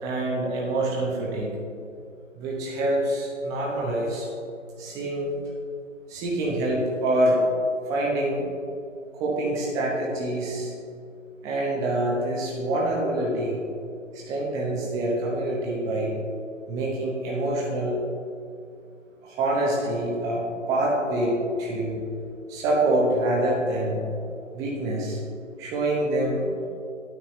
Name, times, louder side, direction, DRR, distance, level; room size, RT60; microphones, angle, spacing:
voice 1, 0.0-1.5 2.4-4.3 4.8-5.3 6.1-7.4 7.9-8.5 9.1-10.7 11.4-13.6 14.1-16.1 16.7-18.0 19.2-22.0 22.5-24.0 24.5-25.2 25.6-26.5, right 1 dB, 10° right, -3 dB, 0.8 m, -26 dB
9.3 x 9.2 x 3.1 m, 2.5 s
figure-of-eight pair, 145°, 39 cm